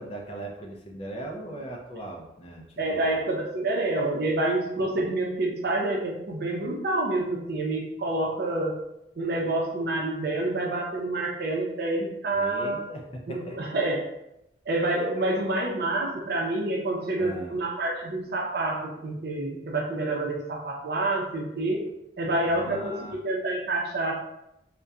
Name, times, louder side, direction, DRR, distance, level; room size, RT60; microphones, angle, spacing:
voice 1, 0.0-2.6 2.9-3.2 12.3-13.6 17.2-17.6 22.4-23.1, right 1 dB, 30° left, 0 dB, 0.4 m, -38 dB
voice 2, 2.8-8.8 9.2-12.8 13.3-14.0 14.7-21.9 22.2-24.1, right 2 dB, 60° right, -1 dB, 0.5 m, -28 dB
2.7 x 2.1 x 2.3 m, 0.84 s
head